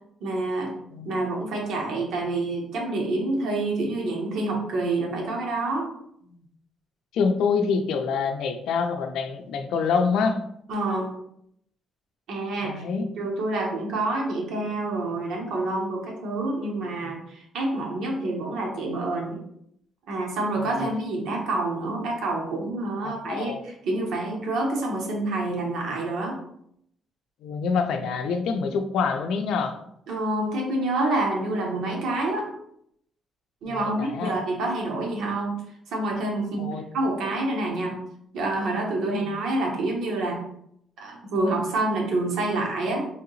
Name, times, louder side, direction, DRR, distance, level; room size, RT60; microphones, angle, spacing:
voice 1, 0.2-0.7 1.0-5.9 10.7-11.1 12.3-19.4 20.1-26.4 30.1-32.5 33.6-35.6 35.9-38.0 38.3-40.4 41.0-43.1, right 2 dB, 75° right, 0 dB, 1.1 m, -27 dB
voice 2, 7.1-10.4 12.6-13.1 20.7-20.9 23.0-23.6 27.4-29.8 33.7-34.3 36.6-36.8 39.1-39.3, left 5 dB, 85° left, 6 dB, 0.5 m, -26 dB
3.5 x 2.8 x 4.0 m, 0.73 s
cardioid pair, 170°, 0 cm